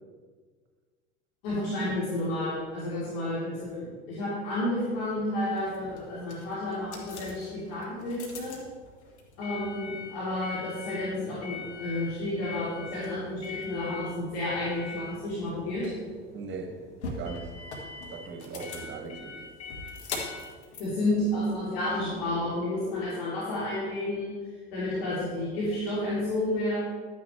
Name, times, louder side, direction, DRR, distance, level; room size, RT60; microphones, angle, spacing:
voice 1, 1.4-8.6 9.4-15.9 20.8-24.3 24.7-26.8, left 1 dB, 65° left, -8 dB, 3.4 m, -31 dB
sound 1, 5.5-21.9, left 4 dB, 80° left, 1.7 m, -42 dB
voice 2, 16.3-16.8 17.1-17.6 18.1-19.5, right 5 dB, 35° right, 2 dB, 2.1 m, -39 dB
11.5 x 9.3 x 3.4 m, 1.5 s
hypercardioid pair, 75°, 33 cm